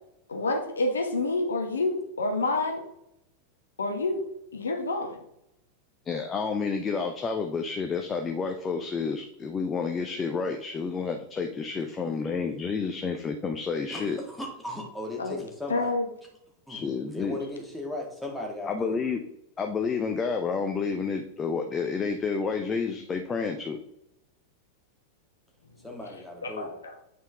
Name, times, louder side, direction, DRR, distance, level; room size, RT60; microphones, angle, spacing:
voice 1, 0.3-2.8 3.8-4.2 4.5-5.2 15.2-15.4 15.7-16.0 26.4-26.7, left 2 dB, 70° left, 3 dB, 1.1 m, -28 dB
voice 2, 6.0-14.2 16.7-17.4 18.6-19.2 19.6-23.8, left 5 dB, 20° left, 4 dB, 0.6 m, -30 dB
voice 3, 13.9-16.0 16.7-19.0 25.8-26.7, left 2 dB, ahead, -2 dB, 1.7 m, -37 dB
8.0 x 4.5 x 3.4 m, 0.79 s
figure-of-eight pair, 90°, 0 cm